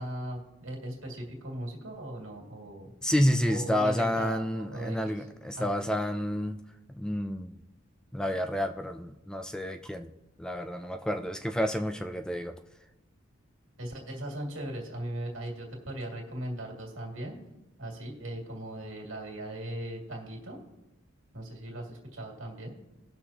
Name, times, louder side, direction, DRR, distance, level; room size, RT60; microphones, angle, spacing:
voice 1, 0.0-2.9 3.4-5.3 5.5-5.9 13.8-17.4 17.8-20.6 21.3-22.8, right 1 dB, 80° right, 0 dB, 2.4 m, -38 dB
voice 2, 3.0-6.6 7.0-7.6 8.1-10.1 10.4-12.5, equal, 5° left, 7 dB, 0.3 m, -29 dB
19.0 x 6.3 x 2.9 m, 0.96 s
head